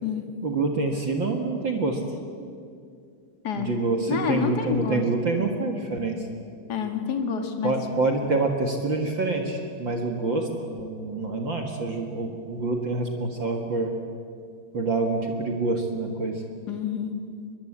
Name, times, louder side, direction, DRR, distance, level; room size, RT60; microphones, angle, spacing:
voice 1, 0.4-2.0 3.6-6.3 7.6-13.9 14.7-16.4, right 3 dB, 50° right, 3 dB, 1.4 m, -26 dB
voice 2, 4.1-5.0 6.7-7.8 16.7-17.1, left 6 dB, 45° left, 5 dB, 1.2 m, -28 dB
23.0 x 22.0 x 8.7 m, 2.3 s
omnidirectional pair, 4.8 m